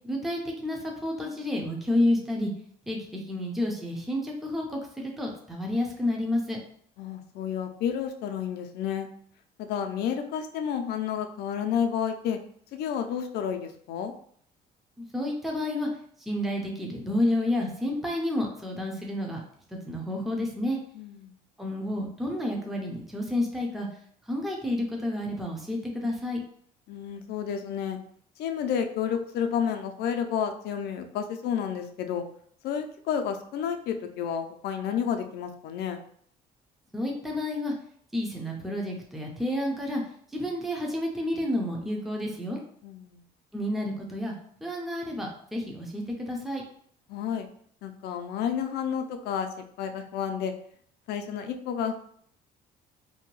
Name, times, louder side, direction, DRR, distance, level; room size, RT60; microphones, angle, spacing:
voice 1, 0.0-2.5 2.9-6.6 15.0-15.9 16.3-19.4 19.9-20.8 21.6-23.9 24.3-26.4 36.9-37.7 38.1-40.0 40.3-42.6 43.5-44.3 44.6-46.6, left 1 dB, ahead, 0 dB, 0.5 m, -30 dB
voice 2, 7.0-9.1 9.6-12.4 12.7-14.1 20.9-21.4 26.9-28.0 28.4-32.2 32.6-36.0 42.8-43.2 47.1-47.5 47.8-49.5 49.8-50.5 51.1-52.0, left 8 dB, 75° left, 6 dB, 0.4 m, -30 dB
2.7 x 2.2 x 3.0 m, 0.62 s
cardioid pair, 110°, 17 cm